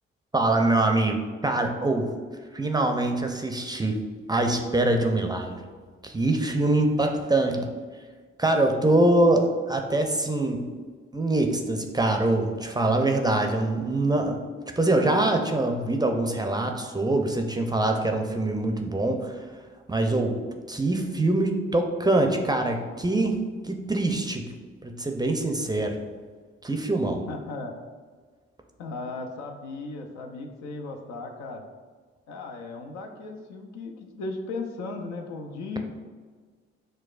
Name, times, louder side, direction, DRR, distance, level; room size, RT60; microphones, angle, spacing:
voice 1, 0.3-2.1 2.5-4.0 4.3-5.6 6.0-7.7 8.4-10.6 11.1-14.4 14.8-19.4 19.9-20.4 20.7-23.4 23.6-24.5 24.8-26.0 26.6-27.2, right 2 dB, 15° right, 4 dB, 0.5 m, -24 dB
voice 2, 27.3-27.8 28.8-31.6 32.3-35.8, left 3 dB, 70° left, 3 dB, 0.6 m, -36 dB
6.2 x 2.2 x 2.4 m, 1.5 s
hypercardioid pair, 45°, 29 cm